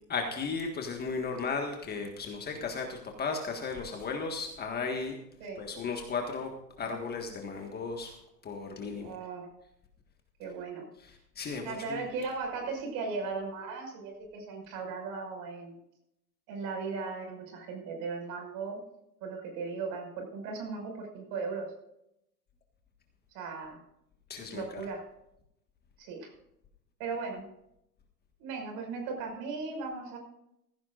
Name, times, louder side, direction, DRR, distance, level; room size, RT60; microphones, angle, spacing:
voice 1, 0.1-5.2 5.6-6.5 6.8-8.1 8.4-9.1 11.0-12.1 24.3-24.8, left 4 dB, 20° left, 3 dB, 1.6 m, -35 dB
voice 2, 9.0-9.5 10.4-10.9 11.6-15.8 16.5-18.8 19.2-21.7 23.3-23.8 24.5-25.0 26.0-26.3 27.0-27.4 28.4-30.2, right 4 dB, 40° right, 3 dB, 5.7 m, -37 dB
16.0 x 15.5 x 2.5 m, 0.81 s
hypercardioid pair, 125°, 49 cm